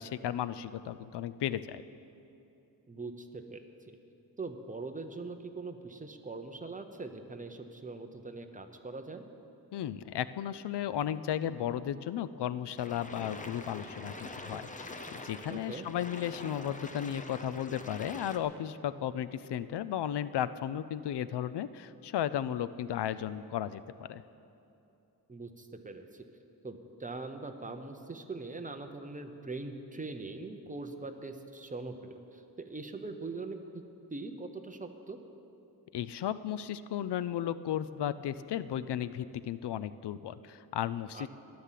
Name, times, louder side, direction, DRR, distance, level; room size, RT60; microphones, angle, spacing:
voice 1, 0.0-1.8 9.7-15.0 15.2-24.2 35.9-41.3, left 10 dB, 85° left, 14 dB, 0.6 m, -35 dB
voice 2, 2.9-3.6 3.9-4.0 4.4-9.2 15.5-15.9 25.3-26.2 26.6-33.8 34.1-35.2 41.1-41.3, right 3 dB, 20° right, 6 dB, 0.8 m, -42 dB
sound 1, 12.8-18.4, left 2 dB, 20° left, 0.7 m, -45 dB
13.5 x 11.5 x 7.5 m, 2.9 s
wide cardioid pair, 170°, 40 cm